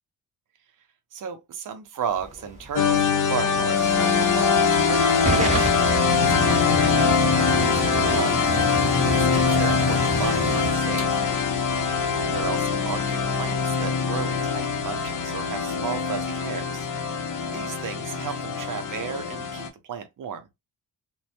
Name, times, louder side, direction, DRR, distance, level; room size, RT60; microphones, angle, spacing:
voice 1, 1.1-8.4 9.1-11.1 12.3-16.9 17.4-20.5, right 7 dB, 55° right, 0.6 m, -34 dB
Hiss / Fire / Tick, 2.1-12.5, right 2 dB, 20° right, 0.9 m, -31 dB
sound 1, 2.8-19.7, left 5 dB, 50° left, 0.7 m, -23 dB
2.2 x 2.1 x 2.7 m
cardioid pair, 85°, 38 cm